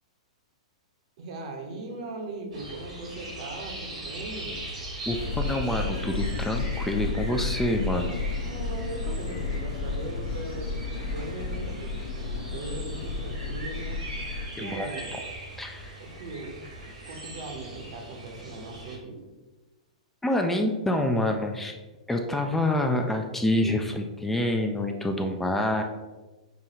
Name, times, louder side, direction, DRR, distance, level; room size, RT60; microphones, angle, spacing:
voice 1, 1.2-4.6 8.4-14.0 14.6-15.1 16.0-16.7 17.1-19.3, right 2 dB, 60° right, 3 dB, 0.9 m, -39 dB
sound 1, 2.5-19.0, right 1 dB, 85° right, 1.5 m, -41 dB
sound 2, 5.1-14.5, left 4 dB, 65° left, 0.8 m, -32 dB
voice 2, 5.1-8.2 14.6-14.9 15.6-15.9 20.2-21.8 22.1-25.8, left 1 dB, 10° left, 4 dB, 0.3 m, -27 dB
6.0 x 2.3 x 2.8 m, 1.2 s
hypercardioid pair, 115°, 4 cm